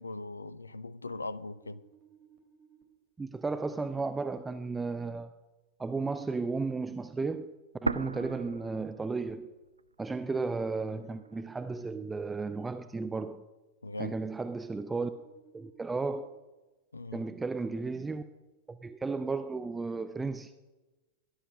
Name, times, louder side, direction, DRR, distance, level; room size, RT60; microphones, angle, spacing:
voice 1, 0.0-1.9 13.8-14.2 16.9-17.3, left 2 dB, 80° left, 0.7 m, -40 dB
sound 1, 1.4-2.8 5.9-7.3 10.4-11.8 14.9-16.3, right 8 dB, 45° right, 2.9 m, -60 dB
voice 2, 3.2-5.3 5.8-7.5 7.8-9.5 10.0-13.4 14.0-15.1 15.5-16.3 17.1-18.2 18.7-20.5, right 4 dB, 10° right, 0.7 m, -34 dB
sound 2, 7.9-9.8 10.1-10.2 10.9-11.9, right 4 dB, 80° right, 0.4 m, -37 dB
17.5 x 11.5 x 6.5 m
figure-of-eight pair, 90°, 0 cm